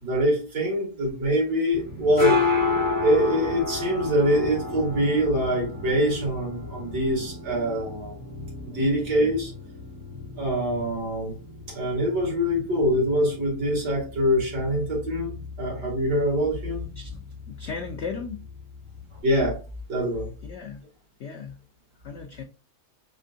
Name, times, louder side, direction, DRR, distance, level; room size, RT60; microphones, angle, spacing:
voice 1, 0.0-2.4 3.0-8.2 8.6-9.5 10.4-11.3 11.7-16.9 19.2-19.6 19.9-20.3, equal, 90° right, 2.4 m, -24 dB
sound 1, 1.7-19.2, left 4 dB, 40° right, 2.8 m, -32 dB
voice 2, 17.5-18.4 20.4-20.8 21.2-21.6 22.0-22.4, left 5 dB, 90° left, 0.6 m, -36 dB
4.3 x 3.3 x 2.6 m
omnidirectional pair, 1.7 m